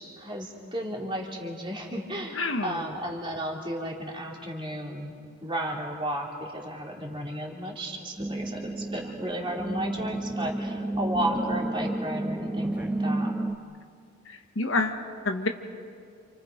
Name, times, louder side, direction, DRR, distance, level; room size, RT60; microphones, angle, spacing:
voice 1, 0.0-13.3, right 1 dB, 20° right, -1 dB, 3.0 m, -33 dB
voice 2, 2.3-2.8 14.3-15.5, left 3 dB, 60° left, 5 dB, 1.4 m, -28 dB
sound 1, 8.2-13.6, right 1 dB, 5° right, 0.6 m, -31 dB
28.5 x 28.5 x 5.2 m, 2.3 s
head